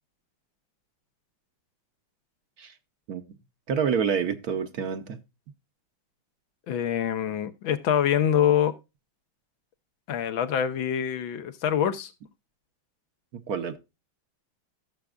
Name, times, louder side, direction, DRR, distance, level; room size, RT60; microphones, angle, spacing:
voice 1, 3.7-5.2 13.5-13.8, right 7 dB, 60° right, 1.1 m, -27 dB
voice 2, 6.7-8.8 10.1-12.1, left 9 dB, 85° left, 1.7 m, -25 dB
16.5 x 6.9 x 2.4 m
omnidirectional pair, 2.1 m